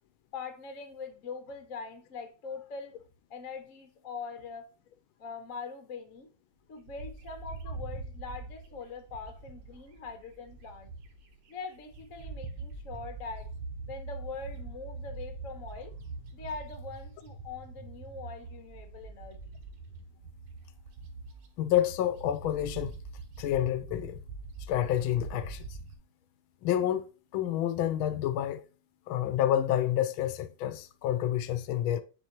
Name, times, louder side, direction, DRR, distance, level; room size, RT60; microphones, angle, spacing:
voice 1, 0.3-3.0 3.3-4.7 5.2-6.3 6.7-10.9 11.5-13.5 13.9-15.9 16.3-19.4, left 4 dB, 55° left, 1.0 m, -42 dB
Bird, 6.9-11.4 11.7-25.9, right 3 dB, 90° right, 1.9 m, -43 dB
voice 2, 21.6-23.0 23.4-24.2 24.7-25.8 26.6-27.1 27.3-28.6 29.1-32.0, left 11 dB, 80° left, 1.4 m, -29 dB
9.5 x 4.3 x 2.9 m
omnidirectional pair, 2.3 m